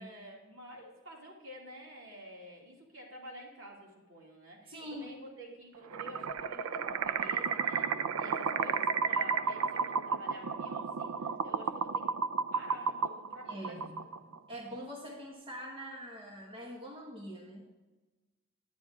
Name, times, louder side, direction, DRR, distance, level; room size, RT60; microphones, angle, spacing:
voice 1, 0.0-12.0 12.5-13.8 14.3-14.4, right 1 dB, 65° right, -2 dB, 2.6 m, -50 dB
voice 2, 4.7-5.1 13.4-14.0 14.5-17.7, equal, 25° right, -2 dB, 1.3 m, -44 dB
sound 1, 5.9-14.4, right 6 dB, 85° right, 0.4 m, -32 dB
10.0 x 9.7 x 3.6 m, 1.2 s
head